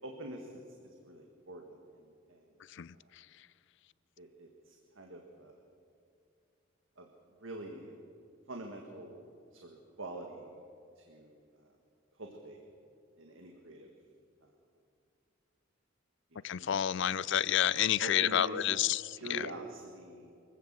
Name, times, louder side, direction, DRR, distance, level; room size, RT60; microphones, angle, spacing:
voice 1, 0.0-2.5 2.9-3.1 4.2-5.6 7.0-7.1 7.4-8.0 8.5-9.3 9.5-10.6 11.0-11.8 12.1-12.6 13.2-13.9 16.3-17.3 18.0-18.7 19.1-20.3, right 1 dB, 70° right, 1.8 m, -46 dB
voice 2, 16.4-19.5, left 10 dB, 60° left, 0.4 m, -29 dB
23.5 x 15.5 x 7.6 m
head